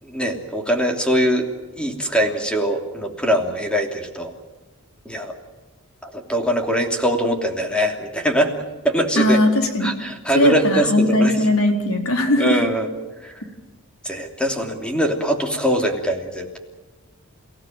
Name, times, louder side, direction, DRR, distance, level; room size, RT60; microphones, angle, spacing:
voice 1, 0.0-1.5 1.7-4.3 5.0-5.3 6.0-8.6 8.8-9.4 9.8-11.4 12.4-12.9 13.2-13.4 14.0-16.6, equal, 5° left, 3 dB, 3.0 m, -22 dB
voice 2, 9.2-9.9 10.3-12.6, left 1 dB, 70° left, 4 dB, 4.4 m, -18 dB
29.5 x 17.0 x 9.2 m, 1.2 s
head